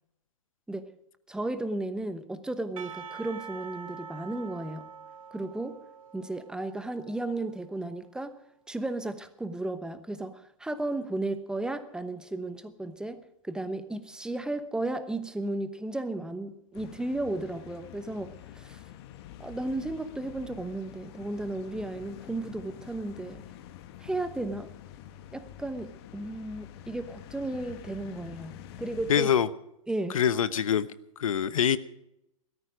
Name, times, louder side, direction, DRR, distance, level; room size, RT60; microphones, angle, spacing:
voice 1, 1.3-4.9 5.3-5.8 6.1-8.4 8.7-18.8 19.4-23.4 24.0-24.7 25.3-29.3 29.9-30.2, right 2 dB, 5° right, 11 dB, 1.0 m, -34 dB
Percussion / Church bell, 2.8-7.8, right 6 dB, 80° right, 0.9 m, -45 dB
sound 1, 16.7-29.2, left 11 dB, 50° left, 1.3 m, -47 dB
voice 2, 29.1-29.5 30.1-30.9 31.2-31.8, left 8 dB, 80° left, 15 dB, 0.9 m, -24 dB
16.5 x 14.0 x 5.1 m, 0.83 s
hypercardioid pair, 130°, 17 cm